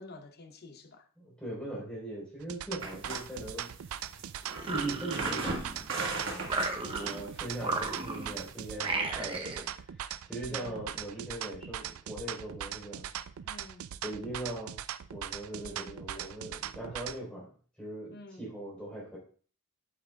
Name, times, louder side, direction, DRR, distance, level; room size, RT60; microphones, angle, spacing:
voice 1, 0.0-1.1 4.7-5.0 6.6-7.3 10.5-10.9 13.4-13.9 15.6-15.9 18.1-18.5, left 2 dB, 45° left, 0.7 m, -50 dB
voice 2, 1.2-3.7 4.0-4.1 4.7-5.5 6.2-6.5 6.8-13.1 14.0-14.8 15.1-17.5 17.8-19.2, right 1 dB, 5° left, 4.0 m, -40 dB
sound 1, 2.4-17.2, right 10 dB, 75° right, 0.4 m, -40 dB
sound 2, 2.8-8.7, right 3 dB, 55° right, 1.4 m, -39 dB
sound 3, 4.5-6.0 6.4-7.3 7.6-8.4 8.8-9.7, right 2 dB, 25° right, 0.7 m, -35 dB
8.6 x 8.6 x 2.3 m
head